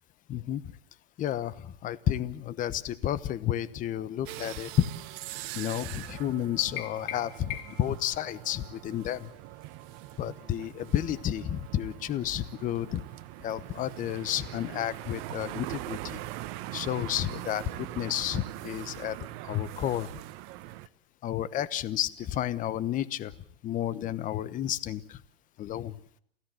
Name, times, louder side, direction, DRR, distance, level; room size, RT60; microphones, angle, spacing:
voice 1, 0.3-0.7 1.2-4.9 5.5-9.3 10.2-13.0 13.4-16.2 16.7-20.1 21.2-23.3 23.6-25.2 25.6-26.0, left 11 dB, 25° left, 16 dB, 1.1 m, -31 dB
sound 1, 4.3-20.9, right 16 dB, 45° right, 1.2 m, -42 dB
sound 2, 6.8-8.0, left 12 dB, 40° left, 3.0 m, -39 dB
28.0 x 16.5 x 7.7 m, 0.67 s
hypercardioid pair, 130°, 30 cm